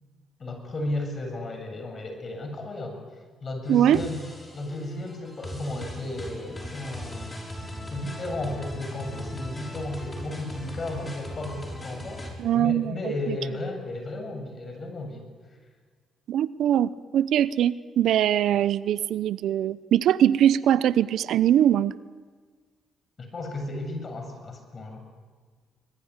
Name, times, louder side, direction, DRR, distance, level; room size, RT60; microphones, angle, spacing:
voice 1, 0.4-3.0 3.4-4.2 4.5-7.4 7.9-12.3 12.5-15.3 23.2-25.0, left 2 dB, 40° left, 5 dB, 7.5 m, -34 dB
sound 1, 3.7-12.3, equal, 20° left, 6.6 m, -39 dB
voice 2, 3.7-4.0 12.4-12.9 13.3-13.4 16.3-21.9, right 10 dB, 75° right, 16 dB, 0.7 m, -22 dB
24.5 x 21.0 x 9.8 m, 1.5 s
cardioid pair, 90°, 0 cm